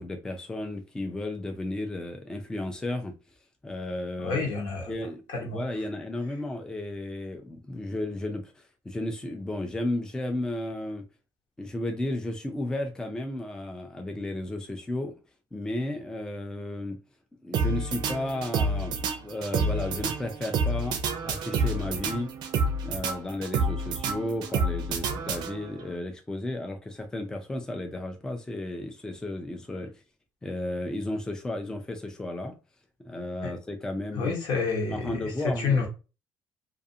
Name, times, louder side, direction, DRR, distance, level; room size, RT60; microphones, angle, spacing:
voice 1, 0.0-3.1 3.6-4.5 4.9-11.0 11.6-15.1 15.5-17.0 17.4-22.3 22.8-30.0 30.4-32.5 33.0-35.8, left 1 dB, 10° left, 0.4 m, -33 dB
voice 2, 4.2-4.9 5.3-5.6 33.4-33.5 34.1-35.2 35.6-35.9, left 4 dB, 75° left, 1.0 m, -28 dB
sound 1, 17.5-25.9, right 3 dB, 70° right, 0.5 m, -29 dB
2.4 x 2.4 x 2.6 m
cardioid pair, 120°, 8 cm